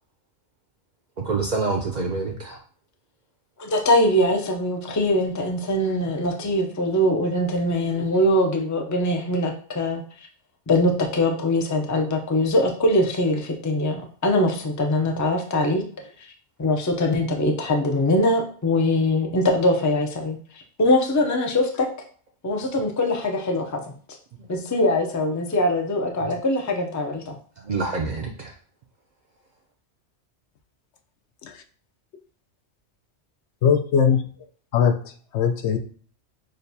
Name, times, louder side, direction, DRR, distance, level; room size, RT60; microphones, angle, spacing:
voice 1, 1.2-2.6 4.9-5.0 5.6-6.0 26.2-26.3 27.6-28.5, right 4 dB, 55° right, 0.5 m, -27 dB
voice 2, 3.6-10.0 10.7-15.8 16.2-16.3 16.6-21.9 22.4-23.9 24.5-27.3, left 1 dB, 30° left, 0.3 m, -22 dB
voice 3, 33.6-34.2 34.7-35.8, left 7 dB, 75° left, 0.9 m, -21 dB
6.3 x 2.3 x 2.6 m
omnidirectional pair, 1.2 m